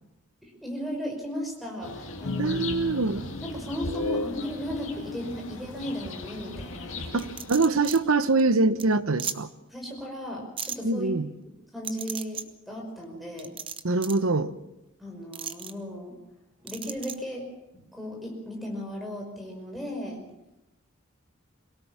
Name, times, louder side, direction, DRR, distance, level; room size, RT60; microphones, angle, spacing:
voice 1, 0.4-2.7 3.4-7.1 9.7-11.1 11.7-13.5 15.0-16.2 16.6-17.5 17.9-20.2, equal, ahead, 0 dB, 5.3 m, -36 dB
sound 1, 1.8-8.1, left 2 dB, 65° left, 2.4 m, -39 dB
sound 2, 2.2-4.5, left 3 dB, 85° left, 0.9 m, -33 dB
voice 2, 2.4-3.2 7.1-9.5 10.8-11.3 13.8-14.5, right 3 dB, 80° right, 13 dB, 1.0 m, -24 dB
sound 3, 7.2-8.0 8.4-8.5 8.8-8.9 9.2-9.4 10.6-10.8 11.8-12.4 13.4-14.2 15.3-15.7 16.7-17.2, right 7 dB, 25° right, 0.9 m, -35 dB
23.0 x 17.5 x 7.3 m, 0.93 s
head